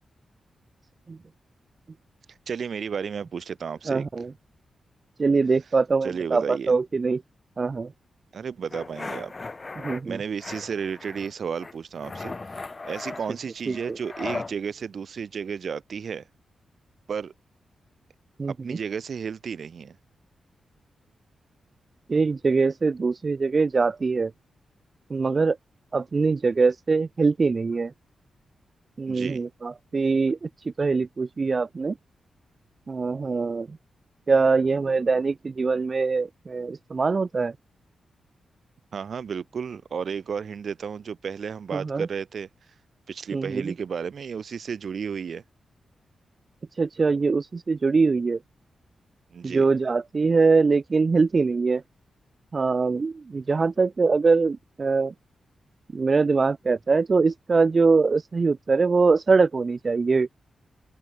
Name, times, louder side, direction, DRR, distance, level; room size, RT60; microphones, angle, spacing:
voice 1, 2.5-4.1 6.0-6.7 8.3-9.3 10.0-12.6 12.8-16.3 17.1-17.3 18.5-20.0 29.1-29.4 38.9-42.5 43.1-45.4 49.3-49.7, right 6 dB, 55° right, 1.3 m, -33 dB
voice 2, 3.9-4.3 5.2-7.2 7.6-7.9 9.8-10.2 13.7-13.8 18.4-18.8 22.1-24.3 25.1-25.6 25.9-27.9 29.0-30.5 30.8-31.9 32.9-33.7 34.3-37.5 41.7-42.1 43.3-43.7 46.8-48.4 49.4-51.8 52.5-55.1 55.9-60.3, right 4 dB, 35° right, 0.3 m, -23 dB
sound 1, 8.7-10.0 10.4-11.3 11.6-14.5, left 3 dB, 25° left, 1.0 m, -37 dB
open air
wide cardioid pair, 135°, 0 cm